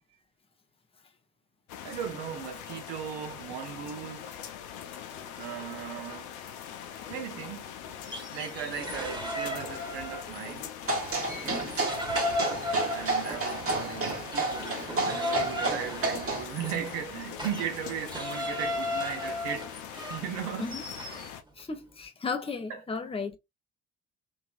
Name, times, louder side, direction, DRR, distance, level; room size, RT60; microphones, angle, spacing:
sound 1, 1.7-21.4, left 9 dB, 70° left, 0.6 m, -42 dB
voice 1, 1.8-4.4 5.4-6.3 7.1-7.7 8.3-10.7 11.4-11.7 12.9-19.7 20.1-20.7 22.7-22.8, right 8 dB, 65° right, 0.9 m, -37 dB
sound 2, 8.1-10.7 11.0-21.3, left 1 dB, 10° right, 1.2 m, -36 dB
sound 3, 10.9-16.4, right 2 dB, 30° right, 1.2 m, -31 dB
voice 2, 11.2-11.7 20.6-20.8 21.6-23.4, left 4 dB, 15° left, 0.7 m, -35 dB
2.9 x 2.8 x 2.4 m
figure-of-eight pair, 45°, 45 cm